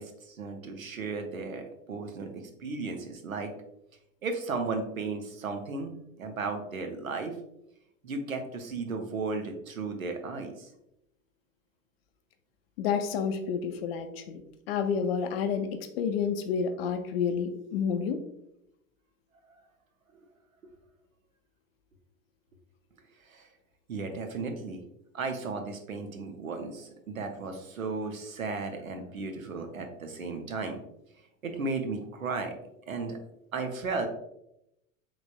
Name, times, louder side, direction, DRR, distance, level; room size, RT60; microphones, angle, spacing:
voice 1, 0.0-3.5 4.2-7.4 8.0-10.7 20.6-20.7 23.3-23.5 23.9-24.8 25.1-30.8 31.4-32.5 32.9-33.2 33.5-34.1, right 4 dB, 80° right, 5 dB, 0.7 m, -35 dB
voice 2, 12.8-14.4 14.7-18.2, left 6 dB, 50° left, 8 dB, 0.5 m, -29 dB
3.9 x 3.1 x 2.2 m, 0.82 s
figure-of-eight pair, 85°, 40 cm